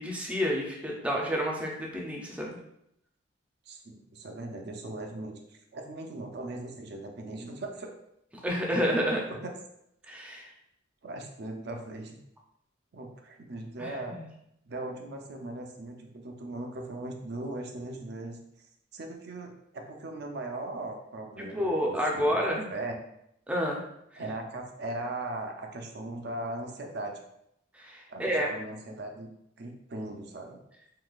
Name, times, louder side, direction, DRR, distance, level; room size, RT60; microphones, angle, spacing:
voice 1, 0.0-2.6 8.4-9.2 10.1-10.5 13.8-14.3 21.4-22.7 23.5-23.8 24.1-24.2 27.7-28.5, equal, 5° right, -2 dB, 0.5 m, -29 dB
voice 2, 3.7-7.9 9.4-9.5 11.0-12.2 12.9-14.2 14.7-18.4 18.9-23.0 24.2-27.2 28.1-29.3 29.6-30.6, right 2 dB, 55° right, 3 dB, 0.5 m, -39 dB
3.8 x 2.8 x 2.4 m, 0.77 s
head